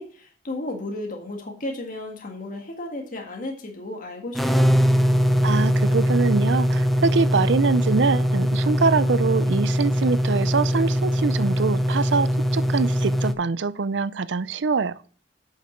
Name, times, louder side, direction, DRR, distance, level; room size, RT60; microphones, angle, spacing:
voice 1, 0.0-4.8, left 2 dB, 45° left, 1.7 m, -34 dB
sound 1, 4.4-13.3, equal, ahead, 0.7 m, -21 dB
voice 2, 5.4-15.0, right 4 dB, 75° right, 0.5 m, -24 dB
8.3 x 6.6 x 4.4 m
head